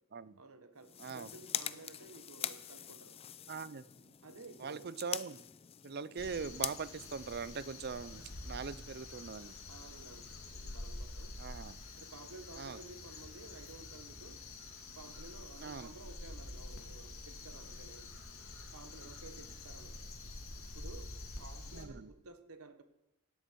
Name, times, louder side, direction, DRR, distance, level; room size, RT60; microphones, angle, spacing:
voice 1, 0.4-3.2 4.2-4.9 9.7-11.4 11.9-14.4 14.9-18.1 18.7-20.0 20.7-22.8, right 3 dB, 90° right, 9 dB, 1.4 m, -54 dB
sound 1, 0.8-8.0, left 10 dB, 25° left, 0.4 m, -44 dB
voice 2, 1.0-1.3 3.5-4.1 4.6-5.5 5.8-9.5 11.4-11.8 12.6-12.8 15.6-15.9 21.7-22.1, right 5 dB, 45° right, 17 dB, 0.5 m, -42 dB
Crow, 6.2-21.8, left 2 dB, 70° left, 2.3 m, -48 dB
16.5 x 12.0 x 4.6 m, 0.95 s
head